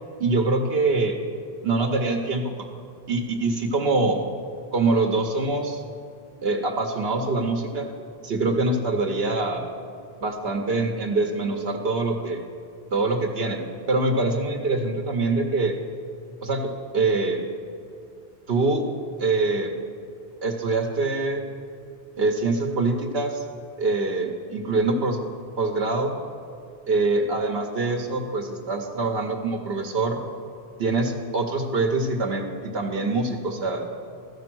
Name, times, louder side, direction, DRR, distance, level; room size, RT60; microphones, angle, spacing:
voice 1, 0.2-1.2 1.6-2.5 3.1-4.2 4.7-5.8 6.4-7.9 8.2-9.6 10.2-12.4 12.9-13.6 13.9-15.7 16.4-17.4 18.5-18.8 19.2-19.7 20.4-21.4 22.2-23.4 23.8-25.2 25.6-26.1 26.9-30.2 30.8-33.8, right 3 dB, 75° right, 2 dB, 1.0 m, -24 dB
13.5 x 5.2 x 6.1 m, 2.5 s
omnidirectional pair, 1.0 m